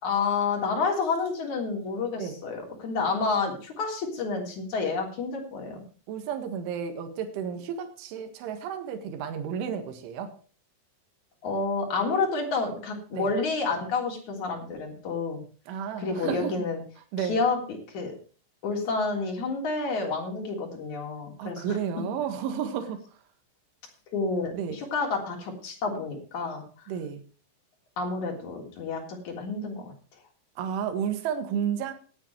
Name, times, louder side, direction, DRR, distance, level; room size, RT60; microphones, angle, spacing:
voice 1, 0.0-5.8 11.4-15.4 16.0-16.8 17.2-17.6 17.9-18.1 18.6-21.8 24.1-26.6 28.0-29.9, left 4 dB, 40° left, 1 dB, 4.4 m, -29 dB
voice 2, 6.1-10.3 13.1-13.3 15.7-16.5 17.1-17.4 21.4-23.0 24.5-24.8 26.9-27.2 30.6-31.9, right 8 dB, 70° right, 6 dB, 4.1 m, -32 dB
18.0 x 10.0 x 3.2 m, 0.38 s
omnidirectional pair, 5.8 m